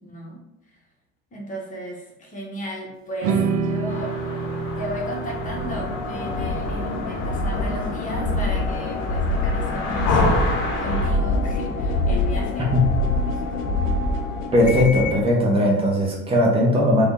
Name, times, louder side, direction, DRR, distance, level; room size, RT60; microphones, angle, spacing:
voice 1, 0.0-0.4 1.3-4.1 4.8-10.3 10.8-12.7 13.3-13.5, right 1 dB, 20° left, -1 dB, 0.9 m, -35 dB
sound 1, 3.2-9.5, right 5 dB, 40° right, 0.4 m, -29 dB
sound 2, 3.9-11.1, left 2 dB, 45° left, 0.9 m, -30 dB
sound 3, 4.6-15.3, left 2 dB, 60° left, 0.6 m, -25 dB
voice 2, 14.5-17.1, left 1 dB, 15° right, -3 dB, 0.9 m, -18 dB
3.5 x 2.1 x 3.8 m, 0.89 s
figure-of-eight pair, 65°, 43 cm